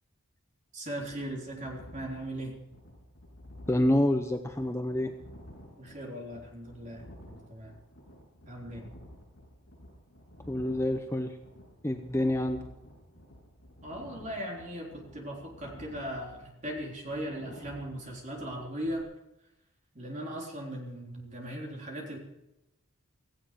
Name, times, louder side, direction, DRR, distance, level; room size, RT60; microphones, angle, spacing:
voice 1, 0.7-2.5 5.8-7.7 8.5-8.9 13.8-19.1 20.0-22.2, right 1 dB, 35° right, -1 dB, 3.7 m, -38 dB
sound 1, 0.9-19.0, equal, 50° left, 7.9 m, -52 dB
voice 2, 3.7-5.1 10.5-11.3 11.8-12.6, left 1 dB, 10° left, 6 dB, 0.8 m, -27 dB
17.0 x 16.0 x 5.1 m, 0.90 s
head